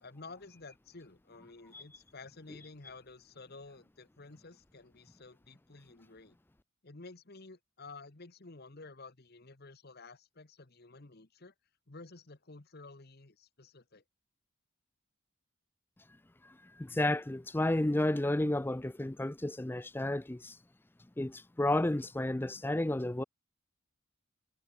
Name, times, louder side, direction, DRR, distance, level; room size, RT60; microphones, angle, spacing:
voice 1, 0.0-6.4 6.8-11.5 11.9-14.0, left 3 dB, 45° left, 1.2 m, -52 dB
voice 2, 16.4-20.6 21.2-23.2, left 1 dB, 10° left, 0.4 m, -32 dB
head